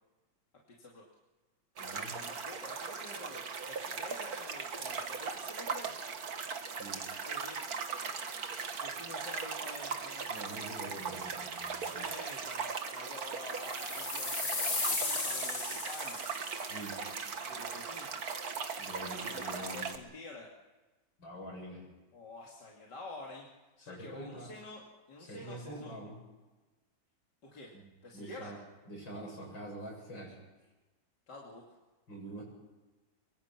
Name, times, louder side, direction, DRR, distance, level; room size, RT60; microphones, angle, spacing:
voice 1, 0.7-1.0 2.1-3.4 3.7-5.9 7.3-7.6 8.8-10.3 11.9-16.2 17.5-18.2 19.2-20.5 22.1-23.5 23.8-24.8 25.1-26.0 27.4-27.7 28.0-28.5 31.3-31.8, left 2 dB, 60° left, -2 dB, 3.2 m, -48 dB
voice 2, 1.8-2.2 6.7-7.0 10.3-12.0 16.7-17.0 18.8-19.9 21.2-21.9 23.8-24.5 25.2-26.2 27.7-27.8 28.1-28.6 28.9-30.4 32.1-32.4, right 1 dB, 75° left, 0 dB, 8.1 m, -45 dB
sound 1, 1.8-20.0, right 5 dB, 55° right, 1.9 m, -39 dB
sound 2, 13.5-16.7, left 3 dB, 35° left, 2.1 m, -35 dB
24.0 x 23.5 x 6.0 m, 1.2 s
omnidirectional pair, 2.1 m